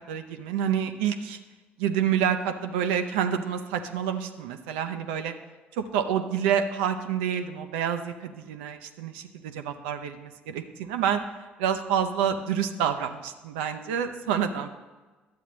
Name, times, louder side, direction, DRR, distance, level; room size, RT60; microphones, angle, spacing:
voice 1, 0.1-1.4 1.8-5.3 5.7-11.2 11.6-14.7, right 8 dB, 70° right, 7 dB, 0.5 m, -28 dB
11.0 x 8.1 x 3.0 m, 1.3 s
figure-of-eight pair, 50°, 6 cm